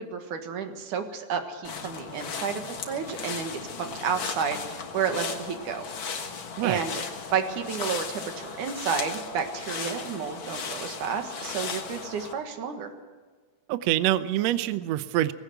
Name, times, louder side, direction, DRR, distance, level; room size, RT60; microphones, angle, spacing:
voice 1, 0.0-5.8 6.6-7.0 7.3-12.9, right 6 dB, 90° right, 6 dB, 3.2 m, -31 dB
sound 1, 1.6-12.3, left 5 dB, 50° left, 1.9 m, -36 dB
voice 2, 6.6-6.9 13.7-15.3, right 13 dB, 75° right, 13 dB, 1.7 m, -25 dB
19.5 x 16.5 x 8.1 m, 1.4 s
omnidirectional pair, 3.4 m